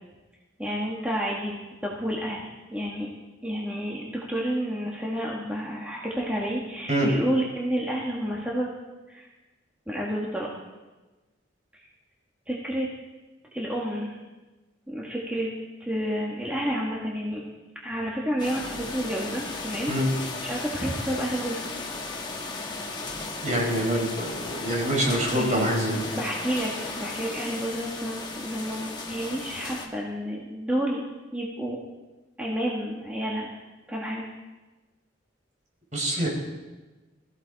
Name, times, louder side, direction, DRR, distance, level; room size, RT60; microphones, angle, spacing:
voice 1, 0.6-1.6 1.8-3.1 3.4-8.7 9.1-9.3 9.9-10.5 11.7-11.8 12.5-12.9 13.5-14.2 14.9-15.5 15.8-17.4 17.8-21.6 25.3-25.6 25.9-31.0 31.3-31.8 32.4-33.5 33.9-34.3, equal, 5° right, -5 dB, 1.7 m, -30 dB
sound 1, 18.4-29.9, left 3 dB, 25° left, 1.6 m, -35 dB
voice 2, 23.4-26.1 35.9-36.3, right 1 dB, 40° right, -2 dB, 5.0 m, -25 dB
21.5 x 14.5 x 4.1 m, 1.2 s
head